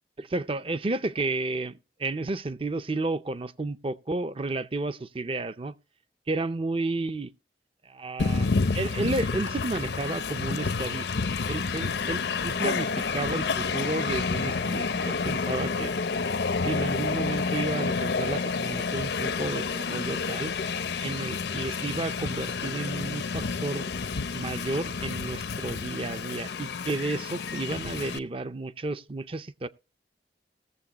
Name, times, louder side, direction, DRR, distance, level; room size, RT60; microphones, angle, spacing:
voice 1, 0.2-5.7 6.3-7.3 7.9-8.5 8.7-11.1 11.5-16.0 16.6-20.5 21.0-23.9 24.3-29.7, right 2 dB, 30° right, 0.5 m, -32 dB
Train, 8.2-28.2, left 4 dB, 75° left, 0.6 m, -29 dB
19.0 x 7.3 x 2.9 m
head